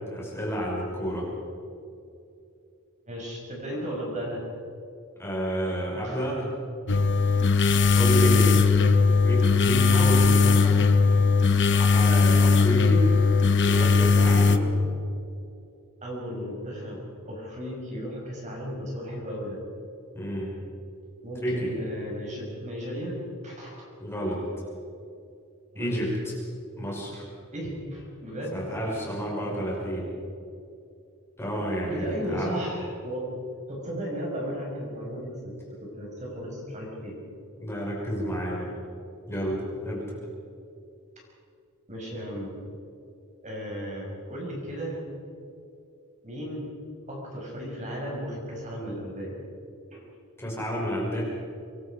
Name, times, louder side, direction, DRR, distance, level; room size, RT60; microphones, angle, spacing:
voice 1, 0.1-1.3 5.2-6.5 7.9-8.6 9.2-10.8 11.8-13.1 13.6-14.5 20.1-20.5 21.4-21.7 24.0-24.4 25.8-26.3 26.7-27.3 28.5-30.0 31.4-32.5 37.6-38.7 39.3-40.0 50.4-51.2, equal, 10° left, -4 dB, 5.9 m, -30 dB
voice 2, 3.1-4.4 6.0-6.3 8.0-8.6 10.3-10.4 14.5-14.7 16.0-17.0 17.3-19.6 21.2-23.2 23.4-23.8 25.7-26.1 27.5-28.6 31.9-33.3 33.7-37.2 41.9-42.5 43.4-45.0 46.2-46.7 47.1-49.4 49.9-50.1, equal, 35° right, -2 dB, 6.1 m, -35 dB
sound 1, 6.9-14.6, left 4 dB, 55° left, 1.1 m, -19 dB
25.0 x 22.0 x 5.2 m, 2.6 s
head